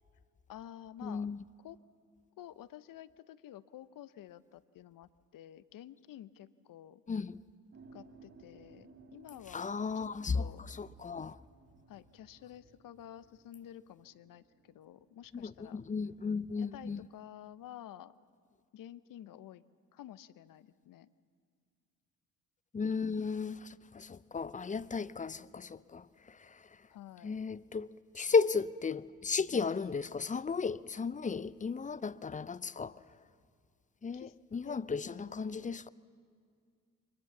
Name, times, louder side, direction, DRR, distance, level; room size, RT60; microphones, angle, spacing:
voice 1, 0.5-1.3 1.6-1.8 2.4-7.0 7.9-10.1 10.3-10.6 11.9-15.8 16.6-18.1 18.7-19.6 19.9-21.1 26.9-27.4 34.1-34.3 34.6-34.8 35.0-35.7, left 11 dB, 55° left, 0.8 m, -51 dB
voice 2, 1.0-1.4 7.1-7.4 9.5-11.4 15.3-17.0 22.7-26.9 27.2-33.2 34.0-35.9, left 5 dB, 20° left, 0.5 m, -35 dB
sound 1, 7.7-15.2, right 4 dB, 40° right, 3.6 m, -60 dB
23.0 x 20.5 x 7.1 m
hypercardioid pair, 55°, 40 cm